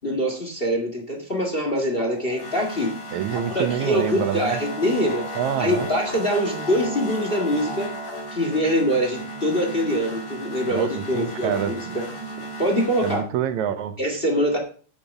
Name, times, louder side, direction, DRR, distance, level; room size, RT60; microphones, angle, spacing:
voice 1, 0.0-2.9 3.5-5.3 5.6-7.9 8.3-12.0 12.6-13.2 14.0-14.6, equal, 25° left, 1.7 m, -24 dB
sound 1, 2.1-13.2, right 1 dB, 45° left, 3.9 m, -34 dB
voice 2, 3.1-4.6 5.4-5.9 10.7-12.0 13.0-14.0, right 9 dB, 80° right, 2.2 m, -27 dB
9.0 x 7.1 x 6.0 m
omnidirectional pair, 3.3 m